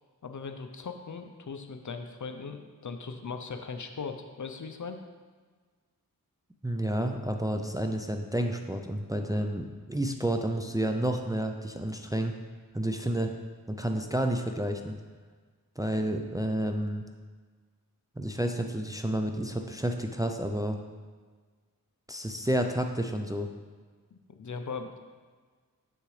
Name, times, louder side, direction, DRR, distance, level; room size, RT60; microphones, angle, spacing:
voice 1, 0.2-5.0 24.1-24.9, left 5 dB, 55° left, 6 dB, 0.6 m, -39 dB
voice 2, 6.6-12.3 12.7-13.3 13.7-15.0 15.8-17.0 18.2-20.8 22.1-23.5, right 1 dB, 10° right, 5 dB, 0.4 m, -30 dB
6.9 x 6.6 x 3.2 m, 1.5 s
wide cardioid pair, 65°, 36 cm